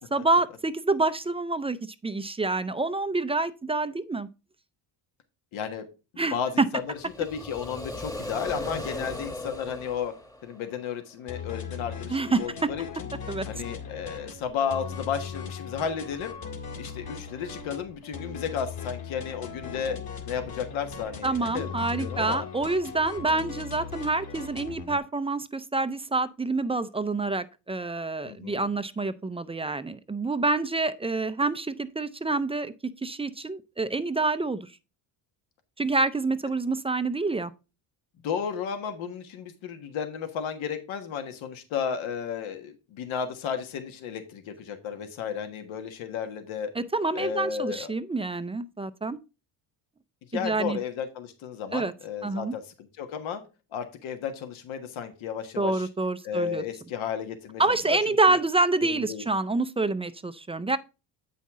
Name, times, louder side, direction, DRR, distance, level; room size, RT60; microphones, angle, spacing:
voice 1, 0.1-1.8 2.0-4.3 6.2-6.4 12.1-12.7 13.3-13.5 21.2-32.7 33.0-34.7 35.8-37.5 46.8-49.2 50.3-50.8 51.7-51.9 52.2-52.5 55.6-56.6 57.6-60.8, right 3 dB, 15° right, 0.4 m, -27 dB
voice 2, 5.5-5.8 6.1-10.1 10.4-13.1 13.5-16.3 16.8-20.0 20.2-22.5 28.2-28.6 38.2-46.7 47.1-47.9 50.3-53.4 53.7-55.9 56.2-58.4 58.8-59.2, left 7 dB, 80° left, 1.5 m, -33 dB
sound 1, 6.9-10.9, left 1 dB, 10° left, 1.1 m, -37 dB
sound 2, 11.3-25.0, left 6 dB, 50° left, 2.0 m, -39 dB
8.3 x 5.6 x 3.6 m
cardioid pair, 100°, 47 cm